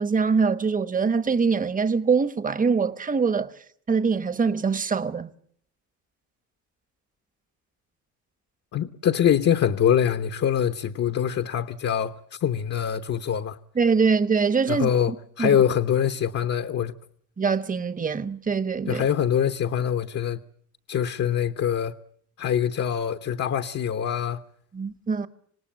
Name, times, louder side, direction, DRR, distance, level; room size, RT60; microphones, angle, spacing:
voice 1, 0.0-3.5 3.9-5.3 13.7-14.9 15.4-15.6 17.4-19.1 24.7-25.3, right 5 dB, 25° right, 1.2 m, -23 dB
voice 2, 8.7-13.6 14.7-16.9 18.9-20.4 20.9-21.9 22.4-24.4, left 9 dB, 50° left, 1.0 m, -24 dB
26.5 x 19.0 x 8.9 m
cardioid pair, 115°, 32 cm